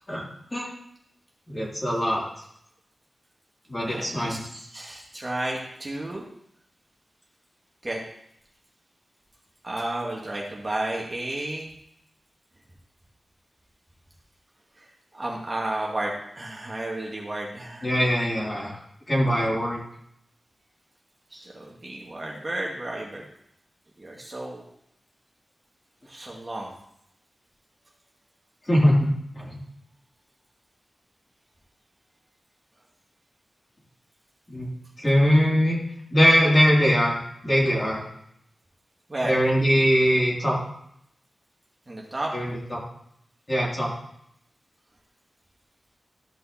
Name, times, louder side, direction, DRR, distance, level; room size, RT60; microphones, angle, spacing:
voice 1, 1.5-2.2 3.7-4.4 17.8-18.8 19.1-19.8 28.7-29.1 29.3-29.6 34.5-34.7 35.0-35.8 36.1-37.2 37.4-38.0 39.2-40.6 42.3-42.8 43.5-43.9, equal, 25° left, -4 dB, 3.6 m, -21 dB
voice 2, 3.8-6.3 7.8-8.0 9.6-11.7 14.8-17.9 21.3-23.3 24.0-24.6 26.0-26.7 39.1-39.4 41.9-42.3, right 1 dB, 30° right, -2 dB, 2.1 m, -32 dB
13.5 x 5.6 x 4.3 m, 0.73 s
wide cardioid pair, 70°, 0 cm